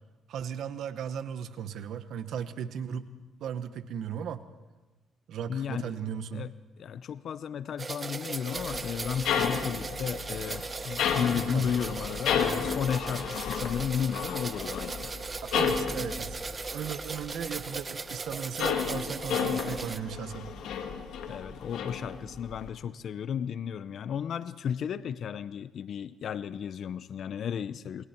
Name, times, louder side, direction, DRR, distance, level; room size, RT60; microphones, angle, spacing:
voice 1, 0.3-3.1 3.4-4.4 5.3-6.5 11.5-11.7 15.4-16.4 16.7-20.5, right 8 dB, 75° right, 11 dB, 1.2 m, -36 dB
voice 2, 5.5-6.0 6.3-15.1 21.3-28.0, left 8 dB, 65° left, 14 dB, 0.6 m, -34 dB
sound 1, 7.8-20.0, right 4 dB, 30° right, 1.0 m, -38 dB
sound 2, 8.5-17.7 18.0-22.7, left 7 dB, 85° left, 2.4 m, -32 dB
28.5 x 21.5 x 4.5 m, 1.1 s
cardioid pair, 90°, 0 cm